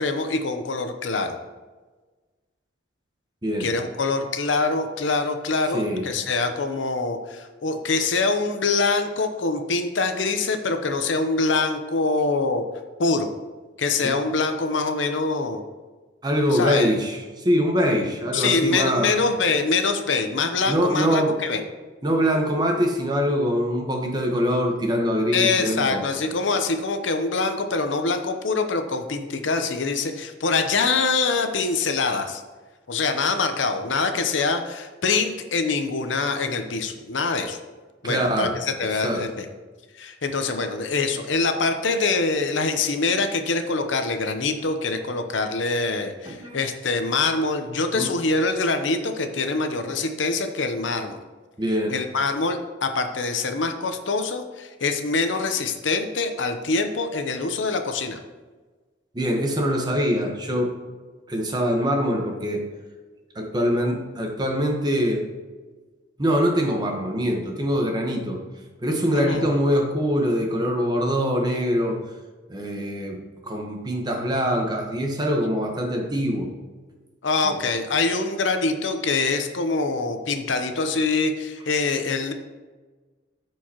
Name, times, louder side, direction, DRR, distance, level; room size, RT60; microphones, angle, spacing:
voice 1, 0.0-1.4 3.6-12.6 13.0-13.3 13.8-15.6 16.5-16.9 18.3-21.6 25.3-32.4 32.9-37.6 38.0-39.5 40.0-51.2 51.9-58.2 69.1-69.5 77.2-82.3, left 3 dB, 75° left, 7 dB, 0.7 m, -24 dB
voice 2, 5.7-6.0 14.0-14.1 16.2-19.1 20.7-21.4 22.0-26.1 38.0-38.5 39.0-39.2 46.3-46.6 47.9-48.1 51.6-52.0 59.1-60.7 61.3-62.6 63.3-65.2 66.2-68.4 68.8-72.0 72.5-76.5 77.4-77.6, equal, 20° right, 1 dB, 1.1 m, -23 dB
13.5 x 4.7 x 2.9 m, 1.3 s
head